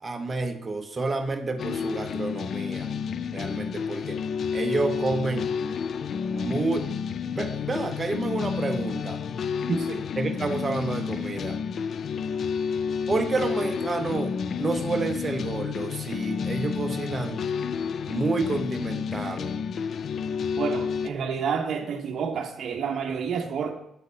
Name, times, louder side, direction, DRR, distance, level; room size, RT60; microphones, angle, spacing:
voice 1, 0.0-2.9 3.3-4.2 4.5-5.5 6.2-6.9 7.2-9.2 10.2-11.6 13.1-17.5 18.1-19.5, right 3 dB, 30° right, 5 dB, 0.9 m, -29 dB
sound 1, 1.6-21.1, left 6 dB, 55° left, 0.3 m, -30 dB
voice 2, 9.7-10.1 20.6-23.7, right 6 dB, 60° right, 3 dB, 0.8 m, -29 dB
8.3 x 3.9 x 5.2 m, 0.78 s
cardioid pair, 90°, 0 cm